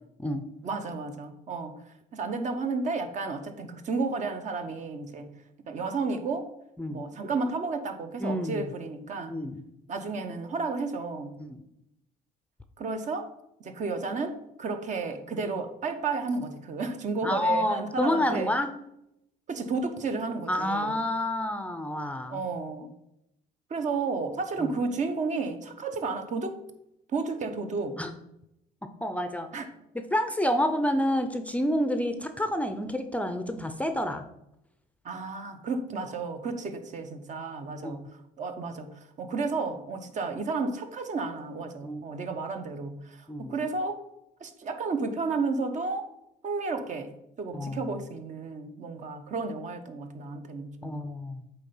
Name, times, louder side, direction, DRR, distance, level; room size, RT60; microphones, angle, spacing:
voice 1, 0.6-1.8 2.1-5.3 5.7-6.5 6.9-9.4 9.9-11.3 12.8-13.3 13.6-18.5 19.5-20.9 22.3-22.9 23.7-26.6 27.1-28.0 29.5-29.6 35.0-44.0 44.4-46.0 46.4-47.1 47.4-51.0, right 4 dB, 45° right, 7 dB, 0.9 m, -32 dB
voice 2, 8.2-8.7 9.3-9.6 11.4-11.6 17.2-18.7 20.5-22.4 24.6-24.7 28.0-28.1 29.0-29.7 29.9-34.2 37.8-38.0 41.8-42.0 43.3-43.6 47.5-48.0 50.8-51.5, left 1 dB, 10° left, 8 dB, 0.5 m, -29 dB
8.2 x 3.3 x 5.5 m, 0.82 s
cardioid pair, 110°, 17 cm